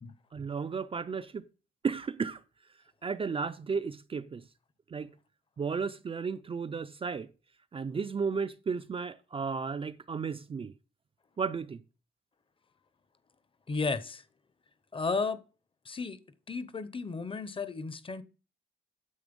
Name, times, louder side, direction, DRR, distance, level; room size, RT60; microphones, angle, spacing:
voice 1, 0.3-1.5 1.8-2.4 3.0-4.4 4.9-5.1 5.6-7.3 7.7-10.7 11.4-11.8, right 5 dB, 30° right, 0.4 m, -34 dB
voice 2, 13.7-14.2 14.9-15.4 15.8-16.2 16.5-18.2, left 4 dB, 25° left, 0.7 m, -33 dB
9.6 x 7.6 x 5.2 m
wide cardioid pair, 155°, 19 cm